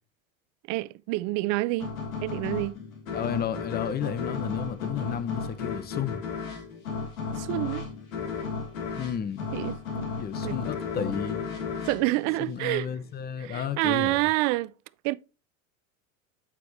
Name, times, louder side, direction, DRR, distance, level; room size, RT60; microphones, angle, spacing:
voice 1, 0.7-1.9 2.2-2.8 7.4-7.8 9.5-10.1 10.4-10.6 11.9-12.9 13.4-14.7 15.0-15.2, right 20 dB, 45° right, 0.5 m, -28 dB
sound 1, 1.8-13.1, left 5 dB, 80° left, 2.4 m, -34 dB
voice 2, 3.1-6.2 9.0-9.5 10.2-11.5 12.4-14.3, left 8 dB, 25° left, 0.7 m, -32 dB
8.4 x 4.6 x 3.1 m
hypercardioid pair, 95°, 41 cm